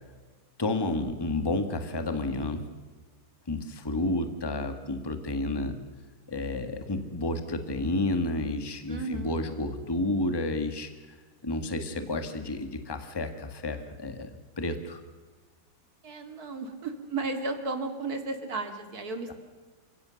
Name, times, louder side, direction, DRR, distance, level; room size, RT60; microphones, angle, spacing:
voice 1, 0.6-2.7 3.5-5.8 6.3-10.9 11.4-14.3 14.6-15.0, left 2 dB, 10° left, 8 dB, 1.6 m, -30 dB
voice 2, 8.9-9.4 16.0-19.3, right 3 dB, 50° right, 7 dB, 2.7 m, -34 dB
28.5 x 17.0 x 6.5 m, 1.4 s
omnidirectional pair, 2.2 m